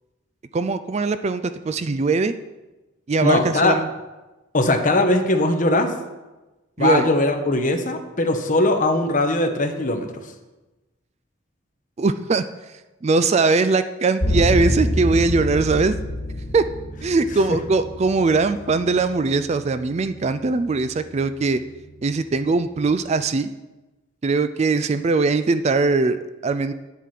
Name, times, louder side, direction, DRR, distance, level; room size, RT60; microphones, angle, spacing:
voice 1, 0.5-2.3 3.1-3.9 6.8-7.1 12.0-12.4 13.0-15.9 16.5-16.6 17.0-21.6 22.0-23.5 24.2-26.7, right 3 dB, 30° right, 11 dB, 0.3 m, -21 dB
voice 2, 3.2-3.8 4.5-5.9 6.8-10.1, left 2 dB, 40° left, 5 dB, 1.1 m, -20 dB
sound 1, 14.2-23.3, left 1 dB, 75° left, 3.1 m, -29 dB
9.4 x 8.2 x 5.9 m, 1.1 s
head